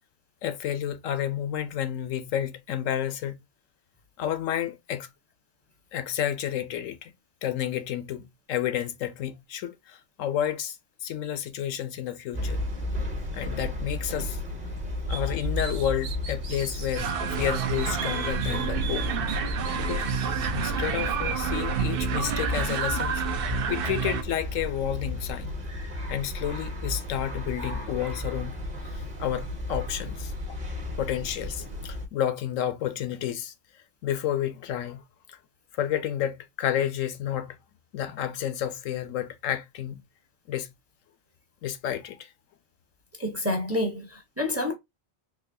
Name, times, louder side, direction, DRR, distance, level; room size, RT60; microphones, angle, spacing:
voice 1, 0.4-3.3 4.2-5.1 5.9-7.1 7.4-10.8 11.0-12.6 13.3-14.4 15.1-19.1 19.7-20.1 20.5-23.2 23.7-25.7 26.1-28.6 28.9-30.6 31.0-35.0 35.3-35.4 35.7-37.6 37.9-40.0 40.5-40.7 41.6-42.3, left 10 dB, 80° left, 1.0 m, -31 dB
sound 1, 12.3-32.1, left 1 dB, 35° right, 1.0 m, -33 dB
sound 2, 15.1-17.1 17.5-20.5, right 7 dB, 75° right, 1.1 m, -40 dB
sound 3, 16.9-24.2, right 7 dB, 60° right, 0.6 m, -29 dB
voice 2, 43.2-44.7, left 1 dB, 15° right, 0.7 m, -28 dB
3.8 x 2.9 x 2.6 m
omnidirectional pair, 1.4 m